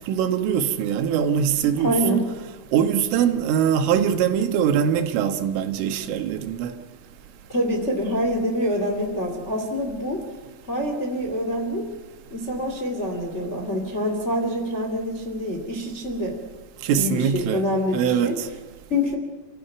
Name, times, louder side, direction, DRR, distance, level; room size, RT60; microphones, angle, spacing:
voice 1, 0.0-2.2 2.7-6.8 16.8-17.7 17.9-18.5, right 8 dB, 80° right, 3.8 m, -22 dB
voice 2, 1.8-2.3 7.5-10.2 10.6-11.8 12.3-16.4 16.9-18.4 18.9-19.2, equal, 25° left, 1.5 m, -26 dB
29.5 x 14.5 x 9.1 m
omnidirectional pair, 5.7 m